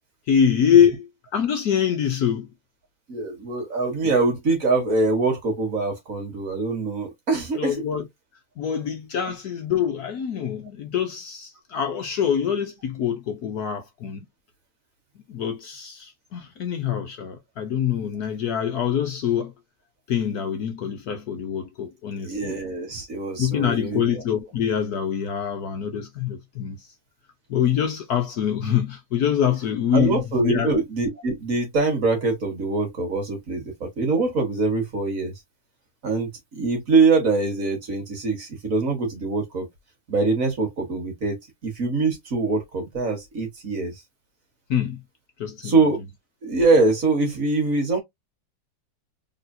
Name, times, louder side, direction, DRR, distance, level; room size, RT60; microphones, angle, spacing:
voice 1, 0.3-2.5 4.0-4.1 7.5-8.1 8.6-14.2 15.3-19.5 20.1-22.6 23.4-26.9 27.5-30.7 44.7-45.0 45.4-45.8, left 8 dB, 65° left, 1.1 m, -24 dB
voice 2, 3.1-7.8 22.2-24.2 29.9-35.3 36.0-39.7 40.1-41.4 41.6-44.0 45.6-46.0 46.4-48.0, right 3 dB, 45° right, 1.9 m, -23 dB
4.1 x 3.3 x 2.7 m
omnidirectional pair, 2.1 m